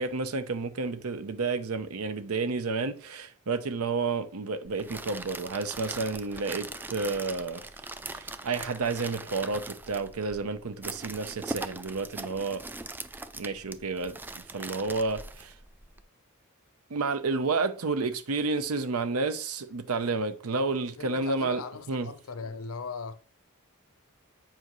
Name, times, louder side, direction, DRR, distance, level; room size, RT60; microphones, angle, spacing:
voice 1, 0.0-7.6 8.1-12.6 13.3-15.5 16.9-21.6 21.9-22.1, right 3 dB, 90° right, 0.7 m, -31 dB
sound 1, 4.6-16.0, right 2 dB, 10° right, 0.3 m, -41 dB
voice 2, 21.0-23.1, left 4 dB, 75° left, 0.7 m, -38 dB
7.7 x 5.0 x 3.1 m
head